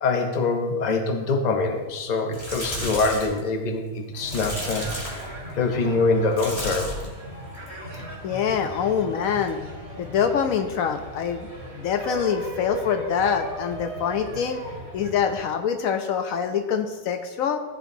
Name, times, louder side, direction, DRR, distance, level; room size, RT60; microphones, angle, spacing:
voice 1, 0.0-4.9 5.5-7.0, left 3 dB, 35° left, 4 dB, 0.8 m, -24 dB
sound 1, 2.2-3.4 4.3-5.3 6.3-7.1 7.5-7.9 9.4-9.5, left 1 dB, 20° left, 1.9 m, -33 dB
sound 2, 4.1-15.4, right 1 dB, 65° right, 3.8 m, -37 dB
voice 2, 8.2-9.6 10.0-11.5 11.7-14.6 14.9-17.6, left 7 dB, 75° left, 7 dB, 1.0 m, -25 dB
14.5 x 6.7 x 2.7 m, 1.3 s
omnidirectional pair, 1.5 m